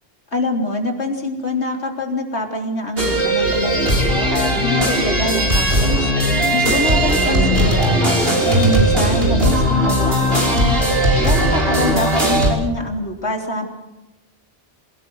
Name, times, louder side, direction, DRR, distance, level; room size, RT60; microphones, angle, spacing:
voice 1, 0.3-6.1 6.5-8.0 8.4-10.8 11.2-13.7, left 2 dB, 75° left, 2 dB, 3.9 m, -25 dB
sound 1, 3.0-12.5, right 1 dB, 60° right, 5.8 m, -17 dB
26.5 x 18.5 x 8.0 m, 0.98 s
omnidirectional pair, 1.1 m